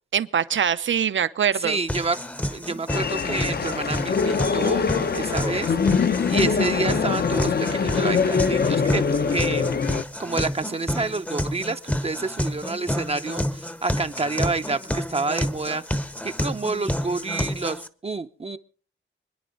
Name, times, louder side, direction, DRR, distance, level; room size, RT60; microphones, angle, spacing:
voice 1, 0.1-1.8, right 8 dB, 65° right, 0.7 m, -23 dB
voice 2, 1.6-2.2 2.5-4.9 5.1-9.7 10.2-18.6, right 3 dB, 30° right, 0.6 m, -29 dB
sound 1, 1.9-17.9, equal, 5° left, 0.7 m, -30 dB
sound 2, 2.9-10.0, left 5 dB, 50° left, 0.7 m, -23 dB
26.5 x 10.5 x 3.9 m
wide cardioid pair, 150°, 21 cm